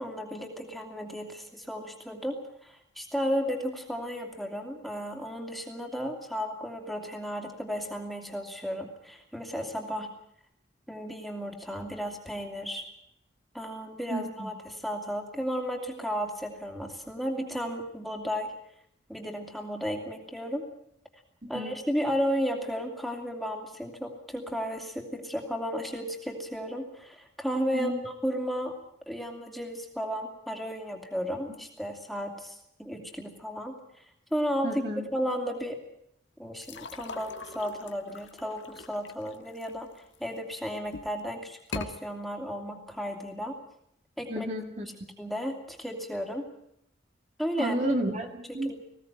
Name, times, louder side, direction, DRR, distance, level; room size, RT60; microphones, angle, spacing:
voice 1, 0.0-10.1 10.9-12.8 13.5-18.5 19.1-20.6 21.5-28.7 29.1-34.0 34.3-34.8 35.1-35.8 36.4-43.5 44.2-44.5 45.2-46.4 47.4-47.7 48.6-48.8, equal, ahead, 2 dB, 2.7 m, -34 dB
voice 2, 14.1-14.5 21.4-21.8 27.7-28.0 34.6-35.1 44.3-44.9 47.6-48.7, right 1 dB, 35° right, 3 dB, 2.0 m, -31 dB
sound 1, 36.6-40.4 40.8-41.2 41.6-41.9, left 3 dB, 75° left, 1.4 m, -41 dB
20.5 x 16.5 x 9.2 m, 0.75 s
head